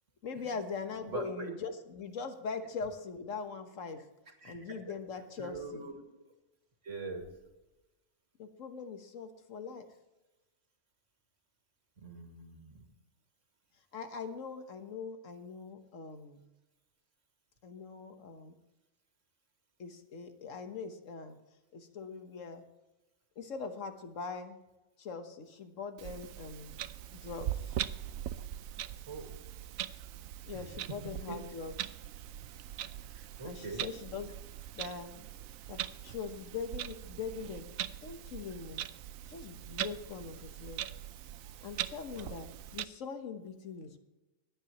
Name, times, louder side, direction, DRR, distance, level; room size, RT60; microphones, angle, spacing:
voice 1, 0.2-4.1 4.4-5.8 8.4-9.9 13.9-16.4 17.6-18.5 19.8-21.4 21.7-22.7 23.4-24.6 25.0-26.8 27.1-27.8 30.5-31.9 33.4-34.3 34.7-35.1 35.7-37.7 38.0-38.9 39.3-40.8 41.6-44.0, left 5 dB, 65° left, 7 dB, 1.5 m, -42 dB
voice 2, 1.1-1.5 4.3-4.8 5.4-6.0 6.8-7.3 12.0-12.9 29.1-29.3 30.5-30.6 31.3-31.4 33.1-33.9 42.1-42.3, right 3 dB, 60° right, 3 dB, 2.6 m, -43 dB
Clock, 26.0-42.8, right 11 dB, 80° right, 1.0 m, -41 dB
24.5 x 9.3 x 3.0 m, 1.0 s
omnidirectional pair, 1.4 m